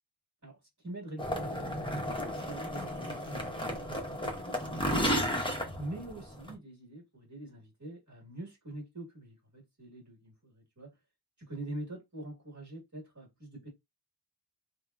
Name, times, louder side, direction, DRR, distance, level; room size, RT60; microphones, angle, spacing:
voice 1, 0.8-1.6 2.4-4.6 5.8-10.9 11.4-13.7, right 1 dB, 40° right, 1.4 m, -44 dB
sound 1, 1.2-6.5, equal, 10° left, 0.7 m, -33 dB
3.6 x 2.1 x 2.2 m
wide cardioid pair, 45°, 45 cm